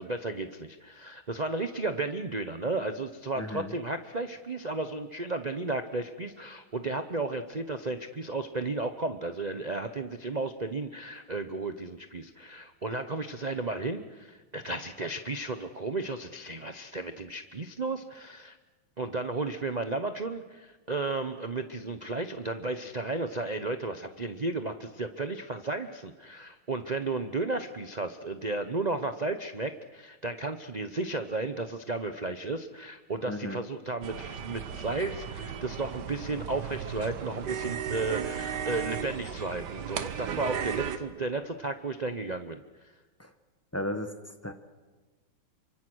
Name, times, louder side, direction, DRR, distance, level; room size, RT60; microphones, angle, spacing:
voice 1, 0.0-18.6 19.0-42.6, right 3 dB, 80° right, 7 dB, 0.3 m, -33 dB
voice 2, 3.4-3.7 33.3-33.6 43.2-43.3 43.7-44.1 44.4-44.5, left 1 dB, 10° left, 7 dB, 0.7 m, -34 dB
sound 1, 34.0-41.0, right 8 dB, 60° right, 1.6 m, -35 dB
28.0 x 25.0 x 6.3 m, 1.3 s
omnidirectional pair, 2.3 m